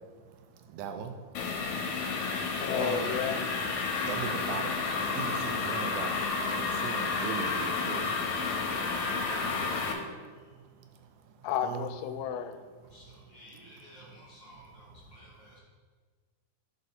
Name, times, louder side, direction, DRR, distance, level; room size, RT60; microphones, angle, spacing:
voice 1, 0.7-1.1 2.8-3.1 4.1-4.7 5.2-6.1 6.6-8.1 9.4-9.7 11.6-11.9, right 7 dB, 85° right, 6 dB, 2.1 m, -38 dB
sound 1, 1.3-9.9, left 4 dB, 75° left, 2.0 m, -31 dB
voice 2, 2.6-3.5 11.4-12.6, left 8 dB, 90° left, 9 dB, 2.1 m, -32 dB
voice 3, 12.9-15.6, equal, 55° left, -5 dB, 1.3 m, -53 dB
11.0 x 5.3 x 2.7 m, 1.5 s
omnidirectional pair, 3.6 m